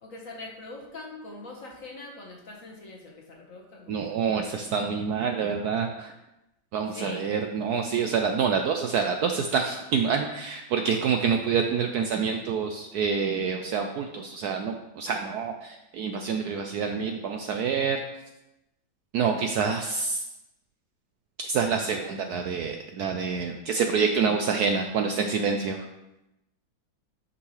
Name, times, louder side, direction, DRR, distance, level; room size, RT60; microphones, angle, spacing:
voice 1, 0.0-4.4 6.9-7.2, left 2 dB, 45° left, -1 dB, 1.6 m, -43 dB
voice 2, 3.9-6.1 6.7-18.0 19.1-20.2 21.4-25.9, right 6 dB, 75° right, 4 dB, 0.9 m, -27 dB
10.0 x 5.5 x 3.2 m, 0.92 s
omnidirectional pair, 2.1 m